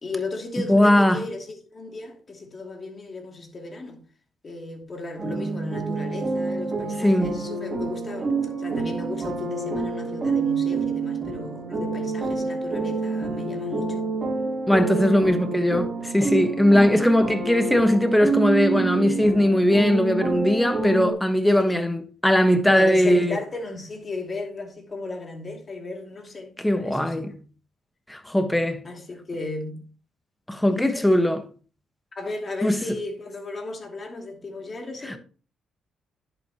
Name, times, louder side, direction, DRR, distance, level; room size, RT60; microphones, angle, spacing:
voice 1, 0.0-4.0 4.4-8.3 8.6-14.1 21.7-21.8 22.6-27.3 28.8-29.9 30.7-31.1 32.2-35.2, left 2 dB, 35° left, 2.7 m, -34 dB
voice 2, 0.7-1.2 7.0-7.3 14.7-23.4 26.6-27.3 28.1-28.8 30.5-31.4 32.6-32.8 35.0-35.1, left 1 dB, 5° left, 1.3 m, -20 dB
sound 1, 5.2-21.1, right 4 dB, 30° right, 3.0 m, -28 dB
10.5 x 7.8 x 3.0 m
cardioid pair, 90°, 0 cm